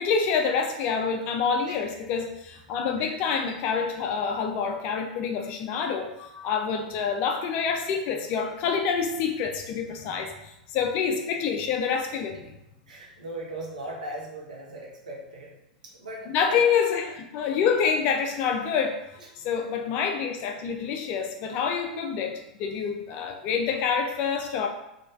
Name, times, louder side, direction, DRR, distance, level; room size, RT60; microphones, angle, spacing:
voice 1, 0.0-12.5 16.3-24.7, left 6 dB, 40° left, 4 dB, 0.4 m, -27 dB
voice 2, 12.9-15.5 15.8-16.6 19.2-19.3 19.6-19.8, right 1 dB, 75° right, -2 dB, 0.8 m, -39 dB
3.0 x 2.3 x 2.3 m, 0.89 s
figure-of-eight pair, 90°, 4 cm